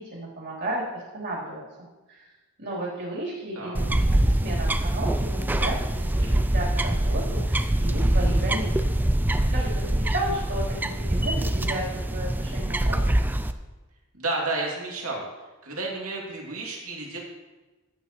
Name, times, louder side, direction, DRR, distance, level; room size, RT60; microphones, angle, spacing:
voice 1, 0.0-2.3 2.6-9.0 9.5-13.3, right 1 dB, 55° right, -5 dB, 3.6 m, -34 dB
sound 1, 3.7-13.5, right 1 dB, 10° right, 0.4 m, -24 dB
voice 2, 14.1-15.3 15.6-17.2, right 2 dB, 70° right, -2 dB, 2.7 m, -31 dB
14.5 x 8.8 x 3.1 m, 1.2 s
head